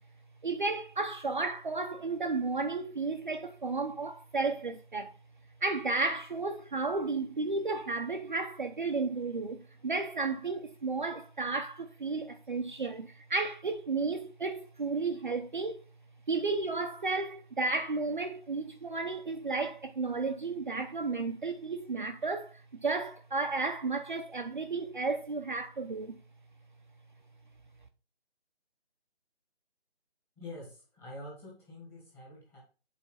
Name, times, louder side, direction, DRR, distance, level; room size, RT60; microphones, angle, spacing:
voice 1, 0.4-5.2 5.6-15.8 16.3-26.2, right 3 dB, 45° right, 0.7 m, -33 dB
voice 2, 30.4-32.6, left 1 dB, 5° left, 1.5 m, -46 dB
8.1 x 4.3 x 4.2 m
figure-of-eight pair, 160°, 33 cm